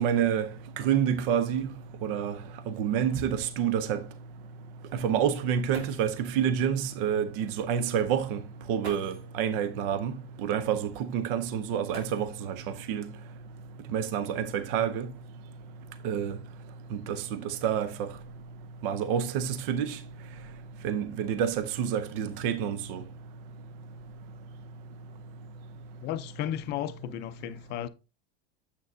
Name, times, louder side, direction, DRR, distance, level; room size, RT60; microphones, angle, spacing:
voice 1, 0.0-1.7 2.0-2.4 2.7-4.0 4.9-8.4 8.7-13.1 13.9-15.1 16.0-16.4 16.9-18.1 18.8-20.0 20.8-23.0, right 8 dB, 60° right, 0.6 m, -28 dB
sound 1, 5.7-6.3 7.6-7.7 8.8-9.4 11.9-12.6 14.0-14.1 14.8-16.3 17.0-17.3 17.7-18.1, right 3 dB, 85° right, 3.6 m, -48 dB
voice 2, 26.0-27.9, left 12 dB, 35° left, 0.5 m, -34 dB
7.6 x 6.4 x 2.6 m
supercardioid pair, 145°, 31 cm